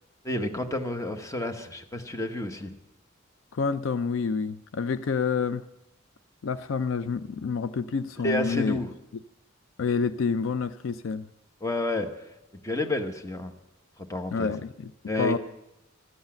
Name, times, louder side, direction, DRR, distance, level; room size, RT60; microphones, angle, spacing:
voice 1, 0.2-2.7 8.2-8.9 11.6-12.1 12.6-13.5 14.1-14.5 15.1-15.4, left 1 dB, 15° left, 6 dB, 1.0 m, -30 dB
voice 2, 3.5-5.6 6.4-8.8 9.8-11.3 14.3-14.9 15.2-15.4, left 5 dB, 65° left, 13 dB, 0.4 m, -28 dB
12.5 x 8.1 x 8.6 m, 0.94 s
head